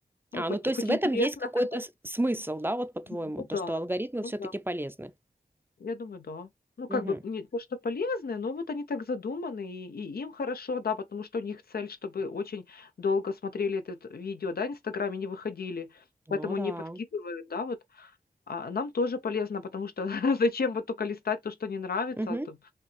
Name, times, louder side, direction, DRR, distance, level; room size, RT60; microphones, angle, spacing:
voice 1, 0.3-5.1 6.9-7.2 16.3-17.0 22.2-22.5, right 1 dB, 15° right, 0.5 m, -31 dB
voice 2, 0.9-1.3 1.6-1.7 3.4-3.8 4.2-4.5 5.8-6.5 6.8-16.0 16.3-18.1 18.5-22.6, left 4 dB, 75° left, 0.7 m, -32 dB
5.2 x 2.9 x 3.2 m
wide cardioid pair, 75°, 16 cm